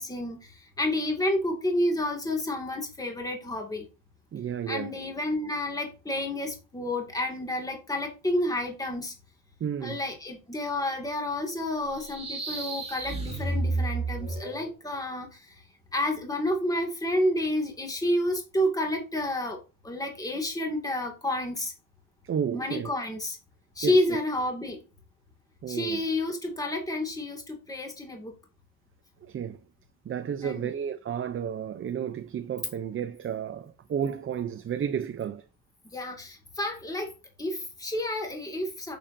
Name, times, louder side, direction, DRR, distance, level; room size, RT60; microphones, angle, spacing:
voice 1, 0.0-3.8 4.7-9.1 9.8-15.6 15.9-21.7 22.5-23.4 23.8-24.8 25.7-28.3 30.4-30.7 35.9-37.1 37.4-39.0, left 1 dB, 10° left, 2.2 m, -30 dB
voice 2, 4.3-5.0 9.6-10.0 22.2-22.9 23.8-24.0 25.6-26.0 29.2-29.6 30.0-35.4, right 8 dB, 40° right, 0.6 m, -32 dB
sound 1, 11.9-14.7, right 3 dB, 20° right, 2.3 m, -31 dB
8.7 x 7.0 x 2.7 m
cardioid pair, 140°, 33 cm